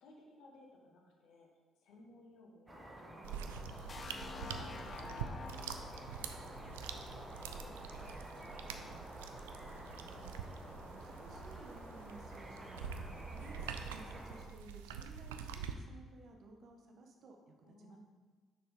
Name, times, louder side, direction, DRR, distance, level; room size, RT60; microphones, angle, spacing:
voice 1, 0.0-1.5 1.8-5.9 6.5-9.0 13.4-13.6 17.6-18.0, left 2 dB, 65° left, 0 dB, 1.4 m, -60 dB
sound 1, 2.7-14.4, right 1 dB, 20° right, 1.2 m, -50 dB
sound 2, 3.2-15.7, right 7 dB, 80° right, 0.4 m, -46 dB
sound 3, 3.9-7.7, left 5 dB, 35° left, 0.5 m, -49 dB
voice 2, 10.0-10.3 10.9-12.8 13.2-18.0, right 3 dB, 55° right, 3 dB, 1.0 m, -57 dB
6.2 x 5.9 x 4.9 m, 1.4 s
figure-of-eight pair, 45°, 0 cm